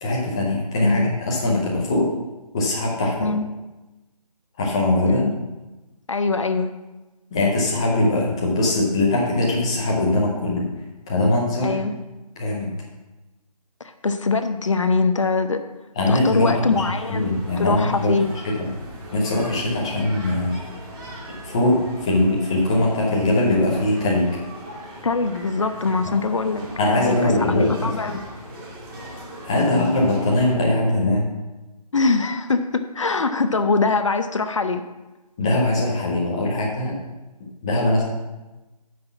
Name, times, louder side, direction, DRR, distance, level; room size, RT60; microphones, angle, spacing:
voice 1, 0.0-2.1 2.5-3.1 4.6-5.2 7.3-10.7 11.1-11.7 12.4-12.7 16.0-16.8 17.1-18.1 18.4-18.7 19.1-20.5 21.4-24.3 26.0-26.1 26.8-27.9 29.4-31.2 35.4-36.9 37.6-38.1, left 2 dB, 10° left, -4 dB, 0.6 m, -21 dB
voice 2, 0.8-1.1 3.2-3.4 5.1-5.4 6.1-6.7 11.6-12.0 13.8-15.6 16.1-18.3 25.0-28.2 29.6-29.9 31.9-34.8, left 4 dB, 50° left, 9 dB, 0.7 m, -23 dB
sound 1, 16.7-30.5, right 1 dB, 35° right, 2.5 m, -39 dB
9.5 x 6.0 x 5.7 m, 1.1 s
figure-of-eight pair, 165°, 20 cm